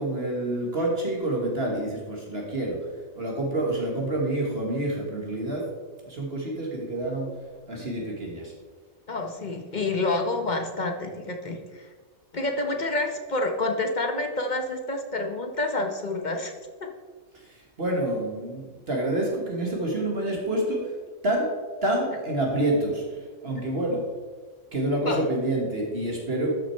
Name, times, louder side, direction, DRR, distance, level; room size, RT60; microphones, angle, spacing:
voice 1, 0.0-2.9 3.2-5.7 6.1-7.4 7.7-8.5 17.3-20.9 21.2-21.6 21.8-24.1 24.7-26.5, right 1 dB, 50° right, -1 dB, 1.7 m, -28 dB
voice 2, 9.1-11.9 12.3-16.5 25.1-25.2, left 2 dB, 40° left, 4 dB, 0.9 m, -28 dB
12.5 x 6.2 x 4.4 m, 1.5 s
omnidirectional pair, 1.4 m